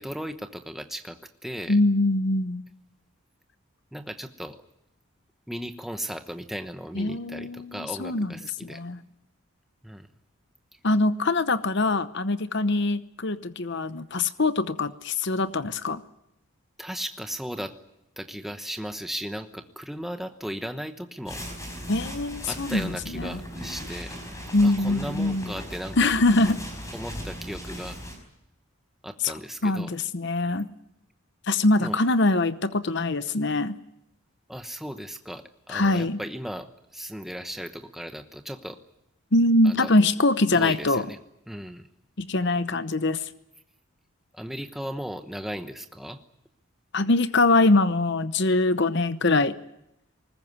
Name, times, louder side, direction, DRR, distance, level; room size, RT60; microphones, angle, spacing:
voice 1, 0.0-1.8 3.9-4.6 5.5-8.8 9.8-10.1 10.7-10.8 16.8-17.8 18.2-21.5 22.4-24.2 24.6-26.1 26.9-28.0 29.0-29.9 31.8-32.0 34.5-38.8 39.6-39.9 40.5-41.2 41.5-41.9 44.3-46.2, equal, ahead, 7 dB, 1.0 m, -36 dB
voice 2, 1.7-2.6 6.9-8.3 8.6-9.0 10.8-16.0 21.9-23.4 24.5-25.5 26.0-26.6 29.2-29.3 29.6-30.7 31.5-33.8 35.7-36.2 39.3-41.1 42.2-43.2 46.9-49.5, left 2 dB, 50° left, 13 dB, 0.9 m, -23 dB
sound 1, 21.3-28.2, equal, 15° left, 4.9 m, -38 dB
20.5 x 19.5 x 9.5 m, 0.83 s
head